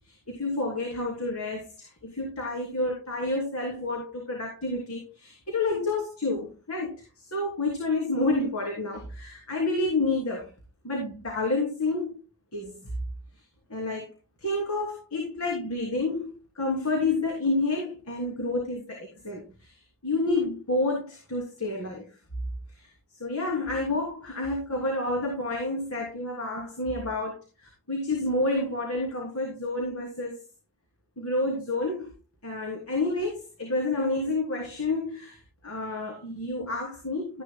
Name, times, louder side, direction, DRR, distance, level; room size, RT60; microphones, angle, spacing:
voice 1, 0.1-10.5 10.8-12.2 12.5-12.8 13.7-14.1 14.4-19.8 20.0-22.1 22.8-22.9 23.2-30.4 31.2-32.1 32.4-35.4 35.6-37.4, left 2 dB, 80° left, -1 dB, 3.0 m, -29 dB
13.0 x 10.5 x 2.2 m, 0.30 s
head